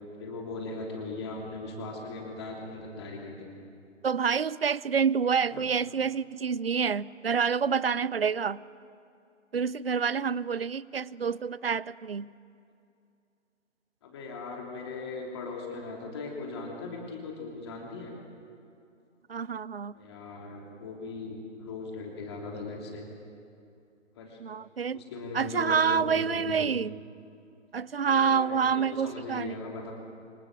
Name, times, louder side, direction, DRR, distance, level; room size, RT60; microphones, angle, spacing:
voice 1, 0.0-3.5 5.5-5.7 14.0-18.1 19.9-23.1 24.1-24.4 24.9-26.7 28.0-29.9, left 3 dB, 20° left, 0 dB, 3.1 m, -39 dB
voice 2, 4.0-8.6 9.5-12.3 19.3-19.9 24.4-25.0 25.3-26.9 27.7-29.6, right 6 dB, 50° right, 21 dB, 0.6 m, -27 dB
28.0 x 25.5 x 7.6 m, 2.6 s
hypercardioid pair, 170°, 37 cm